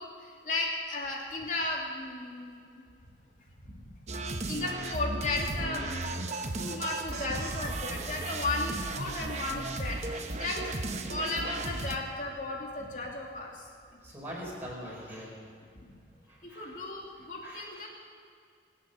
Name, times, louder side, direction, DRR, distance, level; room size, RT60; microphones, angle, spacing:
voice 1, 0.0-2.9 3.6-3.8 4.3-6.3 6.6-13.7 14.1-14.2 16.4-17.9, left 2 dB, 45° left, -1 dB, 2.6 m, -35 dB
sound 1, 4.1-12.0, right 2 dB, 40° right, 0.9 m, -35 dB
voice 2, 14.0-15.3 16.3-16.7 17.4-17.9, equal, 10° right, -5 dB, 4.9 m, -43 dB
24.0 x 8.3 x 6.6 m, 2.3 s
head